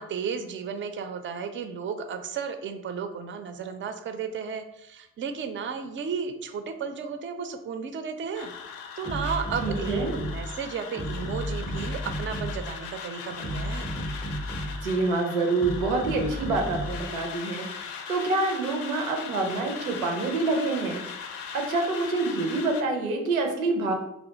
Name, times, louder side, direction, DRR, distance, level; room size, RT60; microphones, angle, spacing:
voice 1, 0.0-13.9, right 6 dB, 30° right, 7 dB, 0.4 m, -34 dB
sound 1, 8.3-22.8, left 6 dB, 60° left, 0.5 m, -39 dB
sound 2, 9.0-10.6 10.9-12.7 13.3-14.9 15.6-17.1, equal, 10° left, 0.6 m, -33 dB
voice 2, 9.6-10.1 14.8-21.0 21.5-23.9, right 3 dB, 85° right, 3 dB, 0.5 m, -27 dB
3.2 x 2.3 x 2.7 m, 0.85 s
figure-of-eight pair, 40°, 41 cm